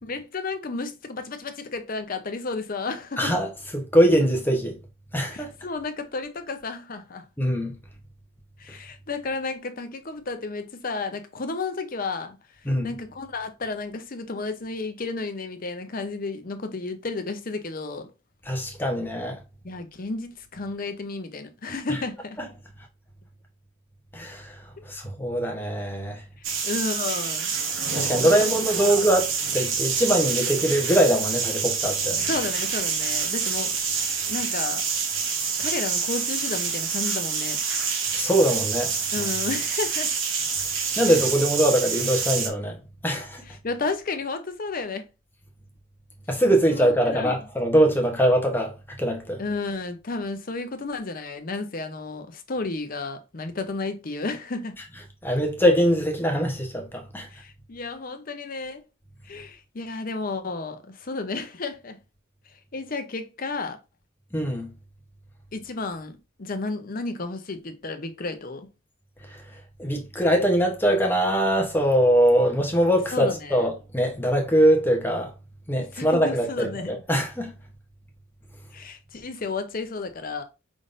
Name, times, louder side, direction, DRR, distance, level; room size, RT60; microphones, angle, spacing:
voice 1, 0.0-3.4 5.3-7.2 8.6-12.4 12.8-18.1 19.6-22.4 26.4-27.5 28.2-28.5 28.8-29.1 32.3-33.8 34.3-34.8 35.6-37.6 39.1-40.1 43.4-45.1 46.7-47.5 49.4-54.7 57.3-58.8 59.2-62.0 62.7-63.8 65.5-68.7 73.1-73.7 75.9-76.9 78.7-80.4, left 3 dB, 40° left, 0.6 m, -32 dB
voice 2, 3.2-3.5 3.7-4.7 5.1-5.5 7.4-7.7 12.7-12.9 18.5-19.4 24.1-24.5 24.9-26.2 27.9-32.2 38.1-38.9 41.0-42.8 43.0-43.4 46.3-48.7 49.0-49.4 55.2-57.3 64.3-64.7 69.8-75.3 75.7-77.5, equal, 10° left, 0.9 m, -22 dB
sound 1, 26.4-42.5, right 6 dB, 65° right, 1.0 m, -27 dB
5.2 x 3.7 x 2.5 m
head